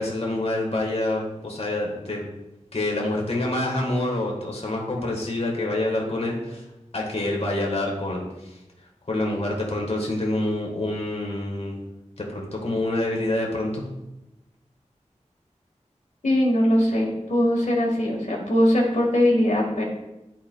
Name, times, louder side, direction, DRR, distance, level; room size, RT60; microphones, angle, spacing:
voice 1, 0.0-2.3 2.7-6.6 6.9-8.6 9.1-11.8 12.2-13.8, left 1 dB, 55° left, -1 dB, 1.5 m, -27 dB
voice 2, 16.2-19.8, left 1 dB, 80° left, -1 dB, 1.8 m, -21 dB
12.0 x 4.5 x 2.3 m, 0.95 s
wide cardioid pair, 60°, 13 cm